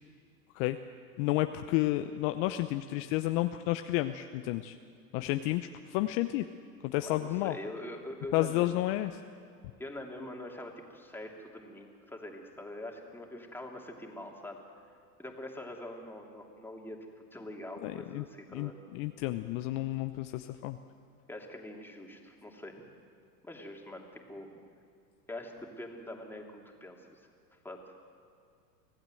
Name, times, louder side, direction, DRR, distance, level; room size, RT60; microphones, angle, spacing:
voice 1, 1.2-4.7 5.1-6.4 6.8-7.6 8.3-9.2 17.8-18.2 18.5-20.8, left 16 dB, 50° left, 8 dB, 0.9 m, -31 dB
voice 2, 7.0-8.8 9.8-14.6 15.2-18.7 21.3-22.8 23.4-24.6 25.3-27.2 27.6-27.8, left 1 dB, 5° left, 1 dB, 2.9 m, -44 dB
25.5 x 16.0 x 7.8 m, 2.3 s
hypercardioid pair, 105°, 49 cm